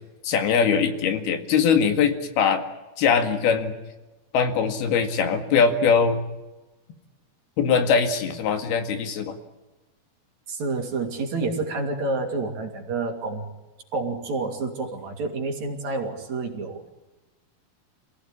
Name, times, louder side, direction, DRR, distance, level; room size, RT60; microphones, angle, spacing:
voice 1, 0.2-2.6 3.0-3.8 4.3-6.2 7.6-9.4, left 6 dB, 85° left, 8 dB, 4.0 m, -21 dB
voice 2, 10.5-13.4 13.9-16.9, right 3 dB, 50° right, 4 dB, 3.9 m, -29 dB
27.5 x 17.0 x 10.0 m, 1.1 s
omnidirectional pair, 4.3 m